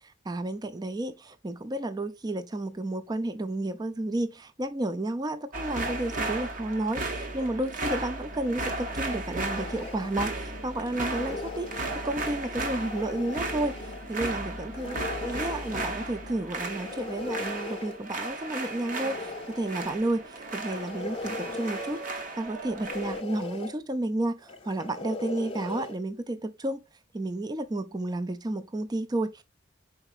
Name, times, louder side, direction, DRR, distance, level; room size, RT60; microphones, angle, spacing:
voice 1, 0.3-11.7 12.0-15.0 15.2-26.8 27.1-29.4, right 1 dB, 20° right, 0.4 m, -32 dB
sound 1, 5.5-23.2, right 2 dB, 45° right, 0.9 m, -35 dB
sound 2, 8.3-16.5, left 4 dB, 70° left, 0.4 m, -50 dB
sound 3, 9.5-10.1 10.9-12.2 12.6-14.0 14.7-15.9 16.6-18.0 18.7-20.0 20.6-22.1 22.6-23.7 24.4-26.0, left 3 dB, 30° left, 0.7 m, -39 dB
4.7 x 4.1 x 2.4 m
head